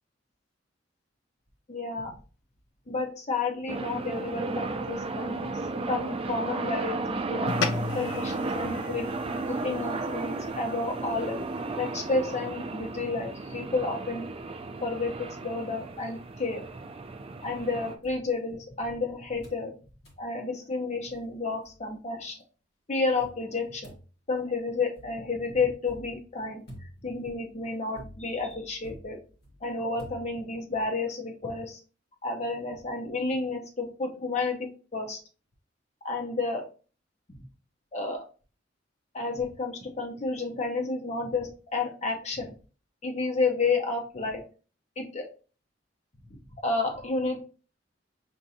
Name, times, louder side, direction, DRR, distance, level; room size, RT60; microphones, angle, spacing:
voice 1, 1.7-2.1 2.9-5.6 5.9-7.5 7.9-9.1 9.5-11.4 11.7-14.3 14.8-16.6 17.4-19.7 20.2-22.4 22.9-23.9 24.3-26.6 27.0-29.2 29.6-31.8 32.2-35.2 36.0-36.6 37.3-37.4 37.9-38.2 39.1-42.5 43.0-44.4 45.0-45.3 46.6-47.4, left 3 dB, 35° left, 2 dB, 0.7 m, -31 dB
sound 1, 3.7-18.0, right 3 dB, 30° right, 0.4 m, -34 dB
sound 2, 7.5-12.1, left 4 dB, 85° left, 0.4 m, -36 dB
sound 3, 17.4-19.0 19.4-19.7 20.0-20.3 20.8-20.9 21.1-22.2 23.2-30.8, equal, 60° left, 1.4 m, -51 dB
6.0 x 2.6 x 2.7 m, 0.37 s
head